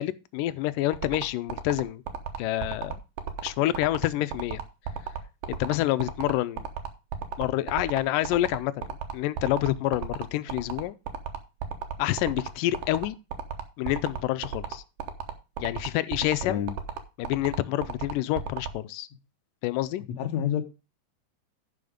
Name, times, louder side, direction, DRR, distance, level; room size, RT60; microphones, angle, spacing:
voice 1, 0.0-2.0 2.4-3.0 3.4-4.6 5.6-6.7 7.4-11.0 12.0-13.2 13.8-14.8 15.6-16.6 17.2-19.1 19.6-20.0, left 15 dB, 85° left, 2.3 m, -28 dB
sound 1, 0.9-18.7, right 8 dB, 85° right, 2.9 m, -33 dB
voice 2, 20.2-20.6, left 10 dB, 65° left, 2.2 m, -27 dB
10.5 x 6.0 x 5.0 m
omnidirectional pair, 3.7 m